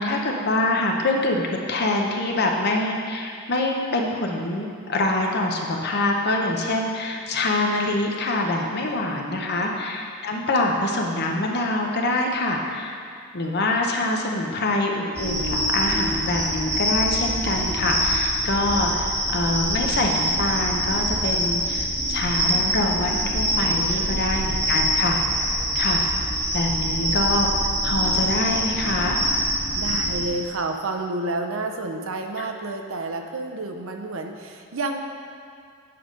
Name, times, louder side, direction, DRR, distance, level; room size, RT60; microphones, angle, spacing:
voice 1, 0.0-13.0 13.3-25.5 25.7-26.0 26.5-27.5 27.8-29.2 32.4-32.5, left 2 dB, 45° left, 1 dB, 0.8 m, -25 dB
voice 2, 8.7-9.7 23.5-24.3 26.7-27.2 29.8-35.0, right 2 dB, 60° right, 4 dB, 0.6 m, -31 dB
sound 1, 15.1-30.2, equal, 10° right, 1.2 m, -24 dB
8.6 x 4.9 x 5.2 m, 2.3 s
head